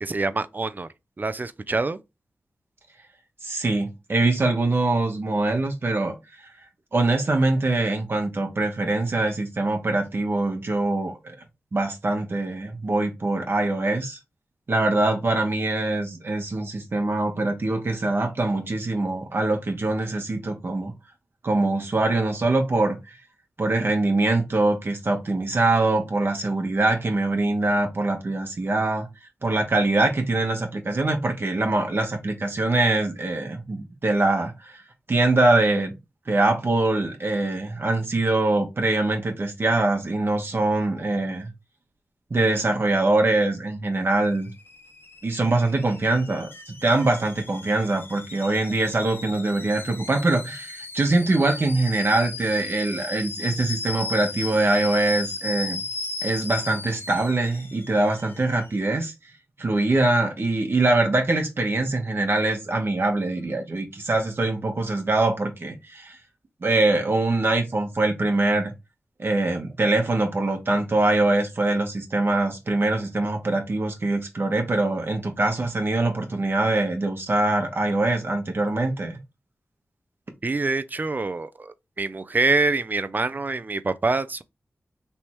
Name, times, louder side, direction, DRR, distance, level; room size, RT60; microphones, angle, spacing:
voice 1, 0.0-0.9 1.2-2.0 80.4-84.4, right 3 dB, 40° right, 0.5 m, -25 dB
voice 2, 3.4-6.2 6.9-11.3 11.7-14.2 14.7-20.9 21.4-23.2 23.6-29.1 29.4-34.8 35.1-35.9 36.3-41.5 42.3-44.5 45.2-55.8 56.2-59.1 59.6-66.2 66.6-68.7 69.2-79.2, right 2 dB, 55° right, 1.0 m, -23 dB
Alarm / Boiling, 43.9-58.8, left 3 dB, 50° left, 0.8 m, -36 dB
3.4 x 2.9 x 4.5 m
cardioid pair, 45°, 5 cm